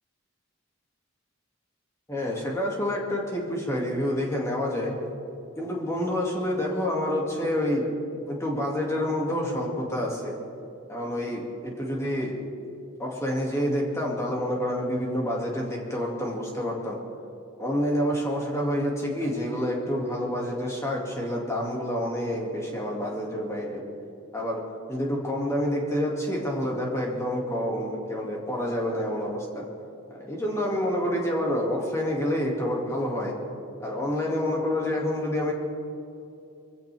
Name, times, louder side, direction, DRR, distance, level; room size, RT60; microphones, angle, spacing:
voice 1, 2.1-4.9 5.6-7.8 8.3-10.3 10.9-11.4 11.8-12.3 13.0-17.0 17.6-23.8 24.3-24.6 24.9-29.6 30.2-33.3 33.8-35.5, equal, 15° left, -2 dB, 2.3 m, -28 dB
23.0 x 16.0 x 3.5 m, 2.8 s
head